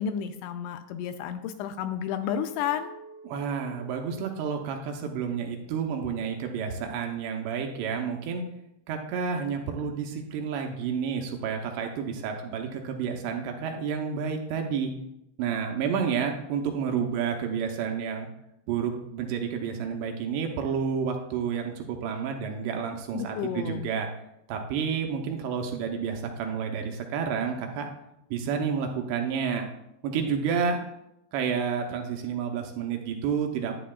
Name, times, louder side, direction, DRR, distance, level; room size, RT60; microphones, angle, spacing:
voice 1, 0.0-2.9 23.1-23.9, left 8 dB, 85° left, 8 dB, 2.7 m, -31 dB
Chink clink, 2.2-6.5, right 5 dB, 50° right, 2.9 m, -51 dB
voice 2, 3.3-8.5 8.9-14.9 15.4-18.3 18.7-24.1 24.5-27.9 28.3-29.7 30.0-30.8 31.3-33.8, right 6 dB, 80° right, 3 dB, 2.7 m, -30 dB
11.0 x 9.6 x 2.3 m, 0.83 s
omnidirectional pair, 5.5 m